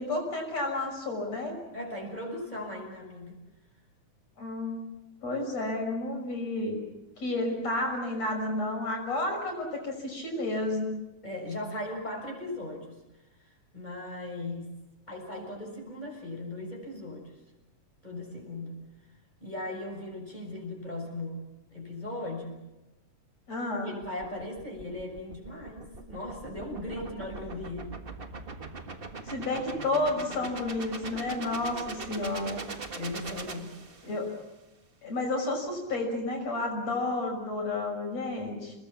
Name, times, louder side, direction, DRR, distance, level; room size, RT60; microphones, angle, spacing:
voice 1, 0.0-1.6 4.4-4.9 5.2-6.8 7.2-10.9 23.5-23.9 29.3-32.6 34.0-34.3 35.0-38.7, left 2 dB, 60° left, 2 dB, 7.2 m, -31 dB
voice 2, 1.7-3.4 11.2-13.0 13.7-14.8 15.1-17.3 18.0-18.7 19.4-21.4 21.7-22.6 23.8-27.9 32.9-33.8, left 1 dB, 15° left, 0 dB, 6.8 m, -38 dB
sound 1, 24.0-34.3, right 3 dB, 35° right, 0.8 m, -41 dB
29.5 x 21.0 x 7.3 m, 1.0 s
omnidirectional pair, 3.4 m